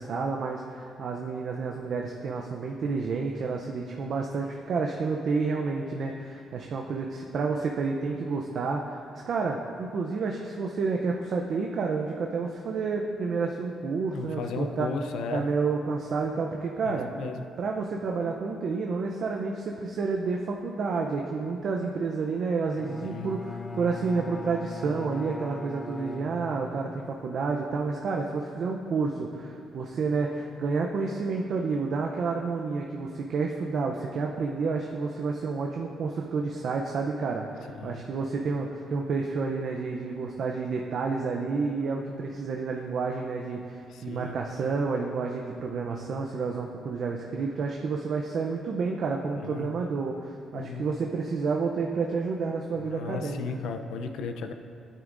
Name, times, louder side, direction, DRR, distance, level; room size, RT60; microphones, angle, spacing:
voice 1, 0.0-14.9 15.3-17.1 17.6-53.4, right 4 dB, 60° right, 1 dB, 0.6 m, -30 dB
voice 2, 14.1-15.5 16.9-17.4 23.0-23.4 37.7-38.1 43.9-44.4 49.3-49.8 50.5-50.9 52.7-54.5, left 5 dB, 85° left, 7 dB, 0.5 m, -35 dB
Bowed string instrument, 22.8-27.0, left 2 dB, 30° left, 0.5 m, -39 dB
12.5 x 9.2 x 2.6 m, 2.4 s
cardioid pair, 100°, 0 cm